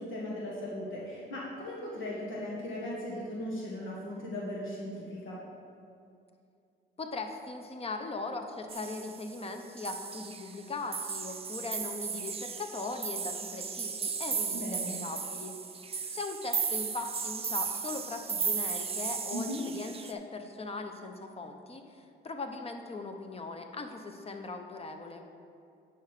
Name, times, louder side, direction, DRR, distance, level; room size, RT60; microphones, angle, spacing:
voice 1, 0.0-5.4 14.5-15.0 19.3-19.6, left 1 dB, 75° left, -4 dB, 1.6 m, -37 dB
voice 2, 7.0-15.6 16.1-25.2, left 3 dB, 30° left, 5 dB, 0.9 m, -39 dB
sound 1, 8.7-9.4 9.8-10.6 10.9-20.1, right 6 dB, 30° right, 0.6 m, -35 dB
9.1 x 5.8 x 4.9 m, 2.5 s
cardioid pair, 90°, 20 cm